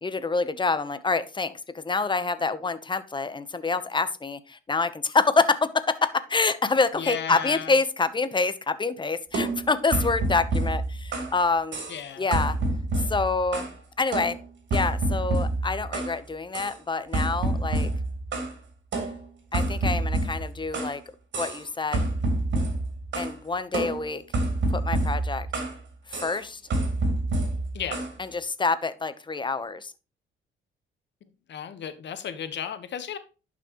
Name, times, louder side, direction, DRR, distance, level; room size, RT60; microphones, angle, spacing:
voice 1, 0.0-11.8 12.2-12.6 13.1-13.7 14.0-14.4 14.7-17.9 19.5-21.0 21.4-22.1 23.2-24.2 24.7-25.5 26.1-26.6 28.2-29.9, left 4 dB, 25° left, 1.0 m, -26 dB
voice 2, 7.0-7.7 11.9-12.3 27.7-28.1 31.5-33.2, left 8 dB, 65° left, 1.3 m, -34 dB
sound 1, 9.3-11.4 11.7-12.0 12.3-13.8 14.1-16.2 16.5-16.8 17.1-18.5 18.9-21.0 21.3-21.7 21.9-23.3 23.7-25.8 26.1-26.4 26.7-28.1, right 2 dB, 65° right, 3.6 m, -28 dB
11.0 x 6.0 x 3.1 m
cardioid pair, 90°, 20 cm